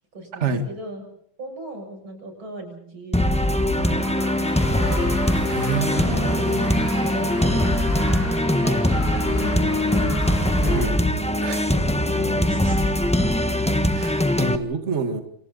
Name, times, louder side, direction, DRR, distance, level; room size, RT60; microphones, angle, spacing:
voice 1, 0.1-1.0 1.4-5.2 6.0-8.0 8.5-9.6 10.5-11.0 11.7-13.0, right 1 dB, 85° right, 4 dB, 8.1 m, -38 dB
sound 1, 3.1-14.6, left 1 dB, 5° left, 1.1 m, -21 dB
sound 2, 3.7-10.9, left 1 dB, 30° left, 6.3 m, -34 dB
voice 2, 5.5-6.7 10.6-11.0 11.4-11.7 13.9-15.2, right 4 dB, 35° right, 6 dB, 2.1 m, -27 dB
29.5 x 27.5 x 4.1 m, 0.66 s
omnidirectional pair, 2.2 m